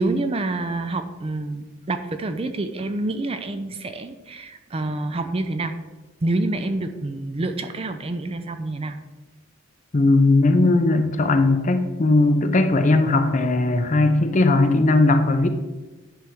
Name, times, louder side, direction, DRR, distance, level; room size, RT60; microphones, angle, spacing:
voice 1, 0.0-5.8 6.2-9.0, right 2 dB, 30° right, 9 dB, 0.5 m, -27 dB
voice 2, 9.9-15.5, left 2 dB, 35° left, 8 dB, 0.6 m, -18 dB
10.0 x 3.5 x 6.1 m, 1.2 s
head